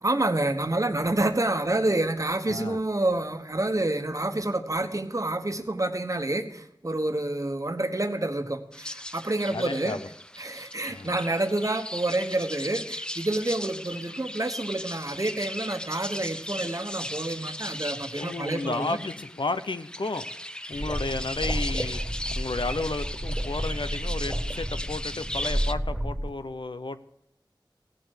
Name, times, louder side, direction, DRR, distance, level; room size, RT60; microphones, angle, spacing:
voice 1, 0.0-10.0 10.4-19.0, right 2 dB, 40° right, 7 dB, 1.2 m, -28 dB
voice 2, 2.5-2.8 9.5-10.1 10.9-11.1 18.2-20.3 20.7-27.0, left 3 dB, 75° left, 11 dB, 0.7 m, -32 dB
sound 1, 8.7-25.7, left 1 dB, 10° left, 0.5 m, -37 dB
sound 2, 20.7-26.3, equal, 10° right, 2.0 m, -31 dB
16.5 x 7.6 x 6.5 m, 0.79 s
wide cardioid pair, 40°, 8 cm